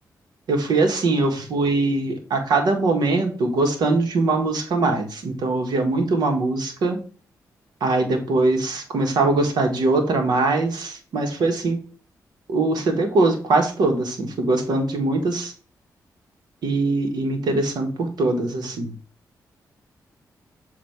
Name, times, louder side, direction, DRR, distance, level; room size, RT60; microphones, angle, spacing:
voice 1, 0.5-7.0 7.8-11.8 12.5-15.5 16.6-18.9, right 3 dB, 80° right, 4 dB, 1.5 m, -22 dB
7.5 x 2.8 x 4.6 m, 0.39 s
cardioid pair, 65°, 7 cm